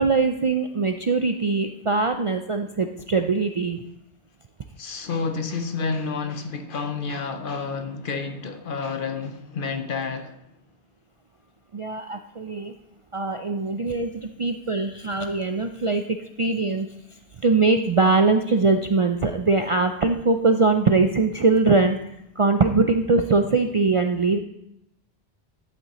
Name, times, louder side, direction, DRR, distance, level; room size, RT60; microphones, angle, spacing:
voice 1, 0.0-3.8 11.7-12.7 13.1-16.9 17.4-24.4, right 3 dB, 55° right, 0.3 m, -22 dB
voice 2, 4.8-10.4, left 4 dB, 55° left, 0.8 m, -29 dB
12.0 x 8.2 x 3.0 m
omnidirectional pair, 1.1 m